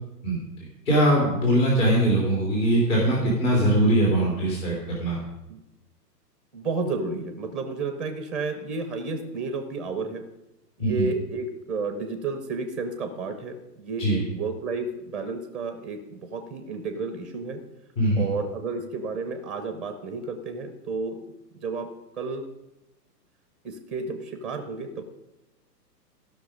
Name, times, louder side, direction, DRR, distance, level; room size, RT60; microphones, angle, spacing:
voice 1, 0.9-5.2 10.8-11.1 14.0-14.2 18.0-18.2, right 1 dB, 50° left, -3 dB, 3.5 m, -21 dB
voice 2, 6.5-10.2 10.8-17.6 18.1-21.2 21.6-21.9 22.1-22.5 23.6-25.0, right 3 dB, ahead, 7 dB, 0.5 m, -31 dB
14.5 x 6.1 x 5.1 m, 0.92 s
hypercardioid pair, 130°, 49 cm